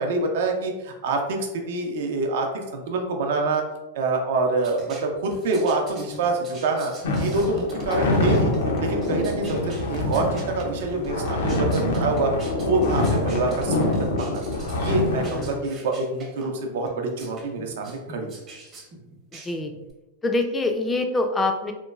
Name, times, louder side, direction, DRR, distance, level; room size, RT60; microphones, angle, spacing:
voice 1, 0.0-3.6 3.9-6.9 7.2-8.5 8.8-12.3 12.6-14.4 14.7-18.3, right 3 dB, 70° right, 3 dB, 0.5 m, -26 dB
sound 1, 4.6-19.9, right 2 dB, 35° right, 0.7 m, -45 dB
sound 2, 7.0-15.6, left 2 dB, 80° left, 0.5 m, -25 dB
voice 2, 15.2-15.8 19.3-19.7 20.2-21.7, left 2 dB, 15° left, 5 dB, 0.3 m, -26 dB
2.9 x 2.2 x 2.3 m, 1.1 s
hypercardioid pair, 120°, 0 cm